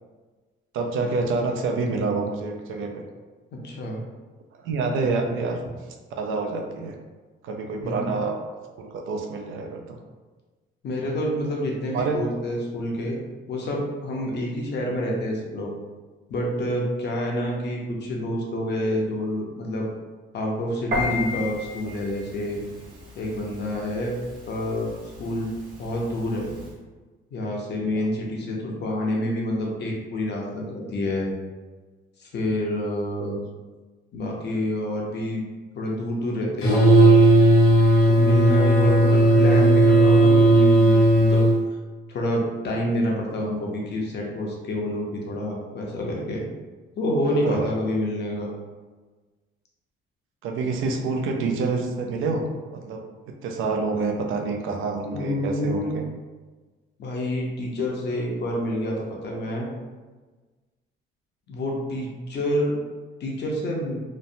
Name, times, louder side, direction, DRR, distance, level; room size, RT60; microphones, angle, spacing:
voice 1, 0.7-3.0 4.5-5.6 6.1-7.0 7.4-8.4 8.8-10.0 11.9-12.2 14.3-14.4 28.0-28.1 47.4-47.7 50.4-53.1 53.4-56.0, right 3 dB, 75° right, 3 dB, 0.5 m, -27 dB
voice 2, 3.5-4.0 7.8-8.1 10.8-13.2 13.5-15.7 16.3-19.9 20.3-22.6 23.2-24.2 24.5-24.9 25.2-25.5 25.8-26.5 27.3-31.3 32.2-33.4 34.1-35.4 35.7-37.1 38.1-41.4 42.1-46.4 47.0-48.5 55.0-56.0 57.0-59.7 61.5-62.8 63.2-64.0, left 1 dB, 55° left, -1 dB, 0.7 m, -28 dB
Piano, 20.9-26.7, left 2 dB, 40° right, 1.0 m, -35 dB
sound 1, 36.6-41.5, right 1 dB, 75° left, 1.0 m, -15 dB
3.0 x 2.1 x 2.6 m, 1.3 s
cardioid pair, 100°, 21 cm